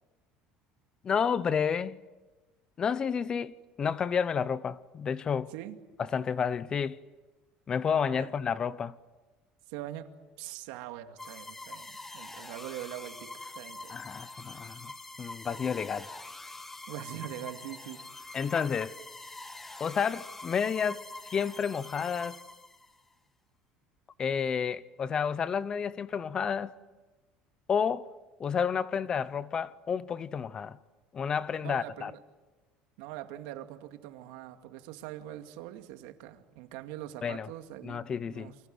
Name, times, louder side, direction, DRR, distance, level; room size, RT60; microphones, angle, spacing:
voice 1, 1.0-2.0 2.8-5.5 6.1-7.0 7.7-8.9 13.9-14.9 15.2-16.1 18.3-19.0 19.8-21.1 21.3-22.4 24.2-26.7 27.7-28.1 28.4-30.8 31.1-32.1 37.2-37.5 37.8-38.5, left 7 dB, 25° left, 0.8 m, -30 dB
voice 2, 9.7-10.1 10.4-14.0 16.9-18.0 31.6-32.2 33.0-38.5, right 13 dB, 85° right, 2.3 m, -43 dB
sound 1, 11.2-23.0, left 2 dB, 10° left, 1.4 m, -45 dB
29.5 x 24.5 x 7.9 m
cardioid pair, 150°, 3 cm